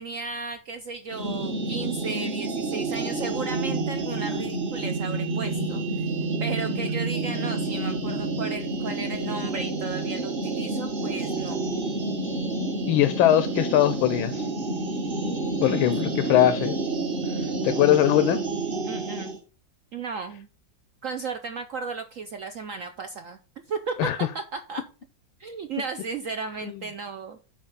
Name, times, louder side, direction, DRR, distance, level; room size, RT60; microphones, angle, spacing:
voice 1, 0.0-11.6 18.8-19.4 19.9-20.5 21.0-23.4 23.7-24.8 25.4-27.4, right 4 dB, 80° right, 0.7 m, -34 dB
sound 1, 1.1-19.4, right 2 dB, 35° right, 1.2 m, -29 dB
voice 2, 12.9-14.5 15.6-16.8 17.3-18.4 24.0-24.3 26.7-26.8, left 13 dB, 90° left, 1.4 m, -21 dB
7.3 x 5.0 x 5.5 m
omnidirectional pair, 2.2 m